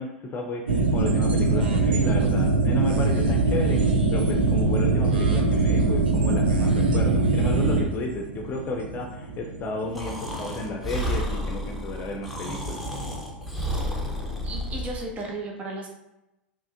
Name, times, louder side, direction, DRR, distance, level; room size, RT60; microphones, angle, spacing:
voice 1, 0.0-12.8, left 2 dB, 35° left, 2 dB, 0.5 m, -33 dB
sound 1, 0.7-11.6 11.8-11.9, right 3 dB, 75° right, 0.5 m, -23 dB
Breathing, 9.9-15.1, equal, ahead, 0.8 m, -31 dB
voice 2, 14.4-15.9, right 2 dB, 30° right, 0 dB, 0.6 m, -34 dB
4.8 x 2.9 x 2.5 m, 0.96 s
figure-of-eight pair, 85°, 6 cm